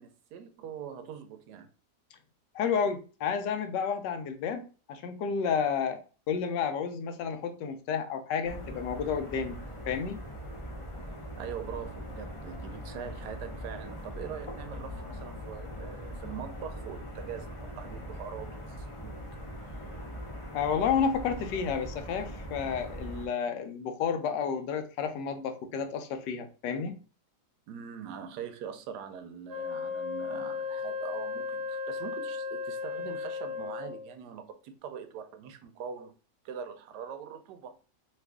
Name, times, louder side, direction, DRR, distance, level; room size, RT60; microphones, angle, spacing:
voice 1, 0.0-1.7 11.4-19.2 19.6-19.8 21.4-21.5 27.7-36.1 36.4-37.8, right 7 dB, 75° right, 1.1 m, -42 dB
voice 2, 2.5-6.0 6.3-9.6 9.9-10.2 20.5-27.0, left 6 dB, 85° left, 1.2 m, -31 dB
sound 1, 8.4-23.3, equal, 55° left, 0.3 m, -41 dB
Wind instrument woodwind instrument, 29.5-34.1, left 5 dB, 25° right, 0.4 m, -35 dB
3.0 x 2.4 x 3.4 m
omnidirectional pair, 1.8 m